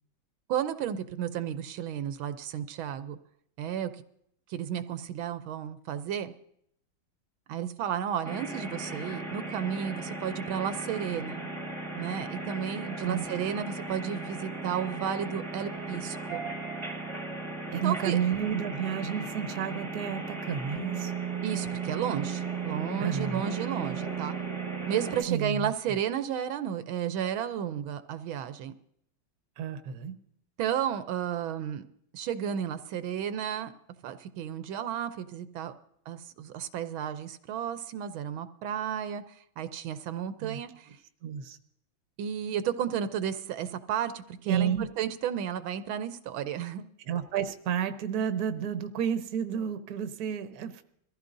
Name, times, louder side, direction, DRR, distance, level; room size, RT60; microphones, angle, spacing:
voice 1, 0.5-3.2 3.6-3.9 4.5-6.3 7.5-11.5 12.0-16.5 17.8-18.2 21.4-24.4 24.9-28.7 30.6-31.8 32.1-33.7 34.0-35.7 36.1-39.2 39.6-40.9 42.2-46.8, right 9 dB, 80° right, 11 dB, 1.5 m, -33 dB
sound 1, 8.2-25.2, right 4 dB, 15° right, 1.4 m, -36 dB
voice 2, 17.7-21.1 23.0-23.4 25.3-25.7 29.6-30.1 40.4-40.6 41.2-41.6 44.5-44.9 47.1-50.8, right 8 dB, 55° right, 9 dB, 1.3 m, -31 dB
23.0 x 15.0 x 2.6 m, 0.71 s
omnidirectional pair, 2.2 m